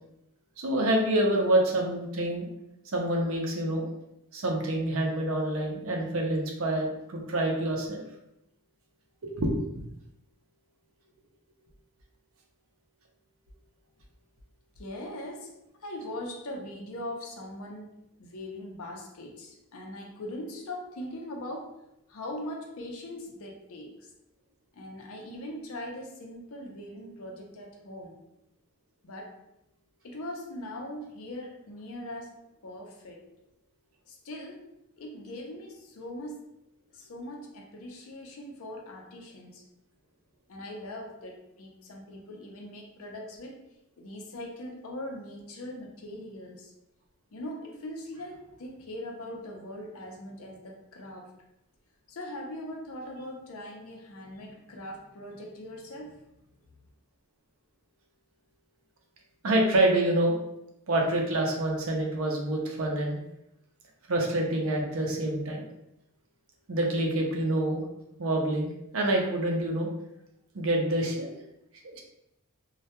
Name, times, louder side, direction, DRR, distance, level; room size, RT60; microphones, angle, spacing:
voice 1, 0.6-2.5 2.9-3.9 4.3-8.0 9.2-9.6 59.4-60.4 60.9-63.2 64.1-65.6 66.7-67.8 68.2-69.9 70.5-71.3 71.9-72.0, right 1 dB, 75° right, 1 dB, 0.5 m, -27 dB
voice 2, 14.8-15.5 15.8-17.9 18.2-21.8 22.1-23.9 24.7-28.2 29.0-29.4 30.0-33.2 34.1-34.6 35.0-36.5 36.9-39.6 40.5-43.6 44.0-46.7 47.3-51.3 52.1-56.3, left 1 dB, 75° left, 0 dB, 0.5 m, -41 dB
2.2 x 2.1 x 2.8 m, 0.83 s
head